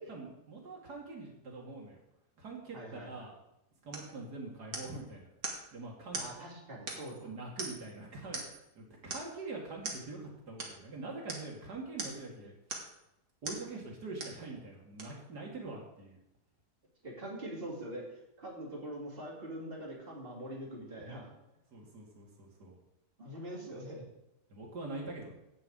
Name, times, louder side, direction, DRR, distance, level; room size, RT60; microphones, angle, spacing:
voice 1, 0.1-2.0 2.4-3.3 3.8-5.3 5.7-6.2 7.2-12.5 13.4-16.2 21.7-22.8 24.5-25.4, right 3 dB, 85° right, -2 dB, 2.8 m, -44 dB
voice 2, 2.7-3.3 6.1-7.3 17.0-18.0 18.4-21.3 23.2-24.0, right 1 dB, 35° right, -4 dB, 3.2 m, -43 dB
sound 1, 3.9-4.1 4.7-5.0 5.4-5.7 6.1-6.3 6.9-7.2 7.6-7.9 8.3-8.7 9.1-9.3 9.8-10.0 10.6-10.8 11.3-11.5 12.0-12.3 12.7-13.0 13.5-13.7 14.2-14.4 15.0-15.1, right 3 dB, 65° right, 2.3 m, -40 dB
10.5 x 5.5 x 8.5 m, 0.88 s
omnidirectional pair, 1.7 m